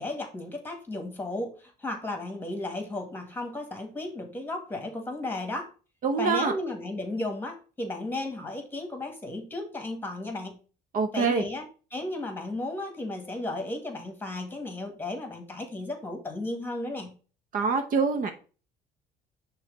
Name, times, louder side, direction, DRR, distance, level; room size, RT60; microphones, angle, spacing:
voice 1, 0.0-5.7 6.2-10.6 11.1-11.7 11.9-17.2, left 2 dB, 10° left, 5 dB, 1.8 m, -34 dB
voice 2, 6.0-6.5 10.9-11.4 17.5-18.3, right 4 dB, 55° right, 7 dB, 0.9 m, -25 dB
6.3 x 3.3 x 5.1 m, 0.36 s
cardioid pair, 110°, 17 cm